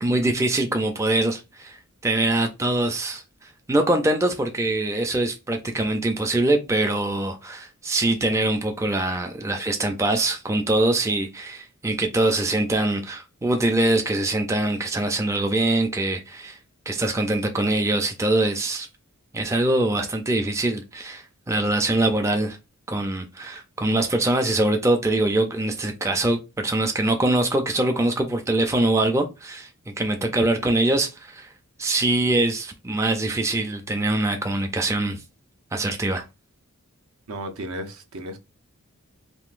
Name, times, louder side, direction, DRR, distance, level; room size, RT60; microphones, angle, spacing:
voice 1, 0.0-1.8 2.0-16.6 16.9-18.9 19.3-22.6 22.9-29.7 30.0-31.5 31.8-35.2 35.7-36.2, right 2 dB, 15° right, 0.3 m, -23 dB
voice 2, 37.3-38.4, right 1 dB, 75° right, 0.7 m, -34 dB
3.6 x 2.6 x 2.4 m
head